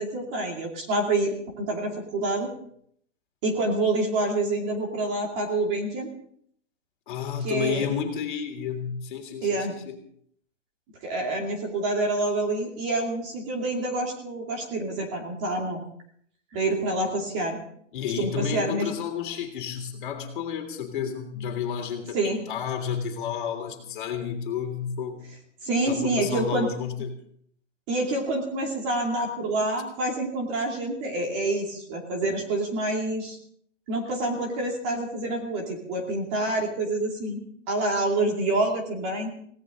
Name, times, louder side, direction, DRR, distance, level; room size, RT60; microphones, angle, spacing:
voice 1, 0.0-2.5 3.4-6.1 7.4-7.9 9.4-9.7 11.0-15.8 16.5-17.6 18.2-18.9 22.1-22.4 25.6-26.7 27.9-33.4 33.9-37.4 37.7-39.3, right 2 dB, 25° right, 1 dB, 2.5 m, -27 dB
voice 2, 7.1-10.0 17.9-25.3 25.8-27.1, left 7 dB, 40° left, 3 dB, 3.4 m, -31 dB
19.5 x 17.5 x 3.8 m, 0.65 s
hypercardioid pair, 165°, 37 cm